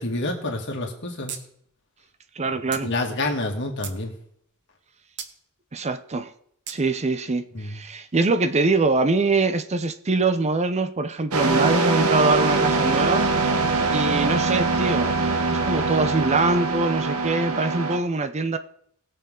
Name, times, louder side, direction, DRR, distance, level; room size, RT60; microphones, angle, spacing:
voice 1, 0.0-1.4 2.8-4.1 7.5-7.8 13.6-13.7, left 2 dB, 55° left, 1 dB, 2.3 m, -28 dB
sound 1, 1.3-1.4 1.7-1.8 2.7-2.9 3.5-4.0 5.2-5.3 6.7-6.8, right 8 dB, 55° right, 1.1 m, -35 dB
voice 2, 2.4-2.9 5.7-6.3 6.7-13.3 13.9-18.6, right 3 dB, 30° right, 11 dB, 0.6 m, -23 dB
sound 2, 11.3-18.0, right 3 dB, 85° right, 1.3 m, -23 dB
20.0 x 7.0 x 3.8 m, 0.69 s
head